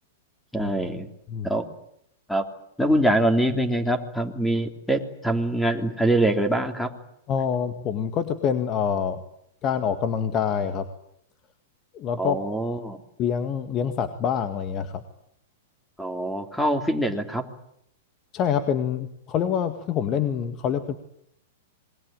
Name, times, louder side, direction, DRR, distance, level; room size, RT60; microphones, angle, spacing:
voice 1, 0.5-1.1 1.4-1.7 2.3-2.4 2.8-6.9 12.2-13.0 16.0-17.4, right 1 dB, 5° left, 7 dB, 3.4 m, -24 dB
voice 2, 7.3-9.2 9.6-10.9 11.9-12.4 13.2-15.0 18.3-21.0, left 8 dB, 35° left, 9 dB, 1.9 m, -26 dB
27.0 x 22.0 x 9.0 m, 0.74 s
hypercardioid pair, 115°, 0 cm